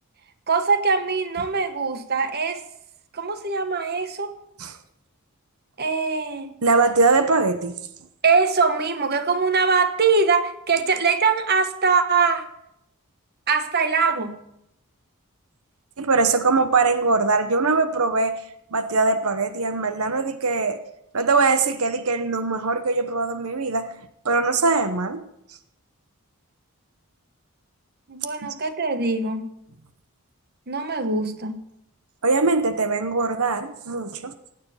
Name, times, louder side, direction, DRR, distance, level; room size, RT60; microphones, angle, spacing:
voice 1, 0.5-2.6 3.1-4.3 5.8-6.5 8.2-12.5 13.5-14.4 28.1-29.5 30.7-31.6, right 4 dB, 45° right, 9 dB, 1.1 m, -22 dB
voice 2, 6.6-7.7 16.0-18.4 18.7-20.8 21.1-23.9 24.2-25.2 28.4-28.5 32.2-34.3, right 3 dB, 80° right, 10 dB, 1.0 m, -21 dB
16.5 x 9.6 x 5.7 m, 0.80 s
head